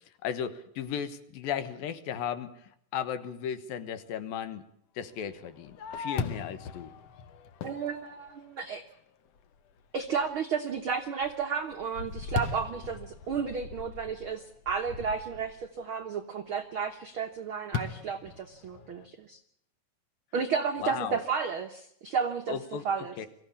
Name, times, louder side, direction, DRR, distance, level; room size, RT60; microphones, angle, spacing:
voice 1, 0.2-4.6 5.0-6.9 20.8-21.2 22.5-23.3, left 8 dB, 80° left, 12 dB, 3.0 m, -35 dB
Fireworks, 5.3-8.8 9.4-9.5 10.0-10.4 10.8-15.7 17.7-19.1, left 5 dB, 65° left, 1.6 m, -39 dB
voice 2, 7.6-8.8 9.9-19.4 20.3-22.6 22.8-23.1, right 6 dB, 85° right, 5 dB, 1.1 m, -32 dB
23.0 x 15.0 x 8.6 m, 0.72 s
omnidirectional pair, 4.1 m